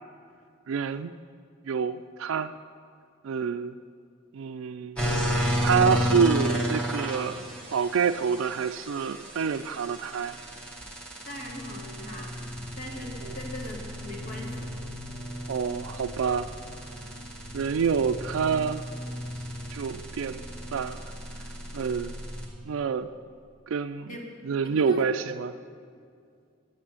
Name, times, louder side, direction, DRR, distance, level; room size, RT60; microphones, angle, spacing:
voice 1, 0.7-1.1 1.7-2.5 3.2-3.7 4.3-5.0 5.6-7.5 7.7-10.4 13.3-13.4 15.5-16.5 17.5-18.8 19.7-20.4 20.7-21.0 21.7-22.1 22.6-23.1 23.7-24.1 24.4-25.5, right 6 dB, 85° right, 8 dB, 0.4 m, -27 dB
sound 1, 5.0-22.5, equal, 5° left, 1.8 m, -33 dB
voice 2, 11.3-12.3 12.8-14.7 24.1-24.3 24.6-25.0, left 1 dB, 45° left, -1 dB, 2.2 m, -39 dB
10.5 x 8.6 x 7.7 m, 2.3 s
head